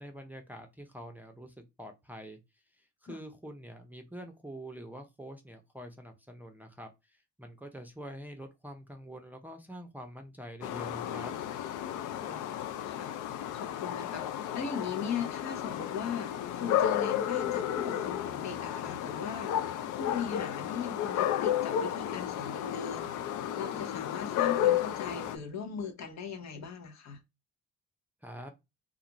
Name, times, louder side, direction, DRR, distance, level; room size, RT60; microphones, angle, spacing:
voice 1, 0.0-2.4 2.7-11.4 28.2-28.5, equal, 5° right, 0.5 m, -46 dB
sound 1, 10.6-25.4, left 11 dB, 80° left, 0.5 m, -32 dB
voice 2, 12.2-13.2 13.5-14.3 14.5-19.6 20.0-23.1 23.6-27.2, left 6 dB, 65° left, 0.9 m, -39 dB
2.4 x 2.4 x 2.9 m
cardioid pair, 90°, 30 cm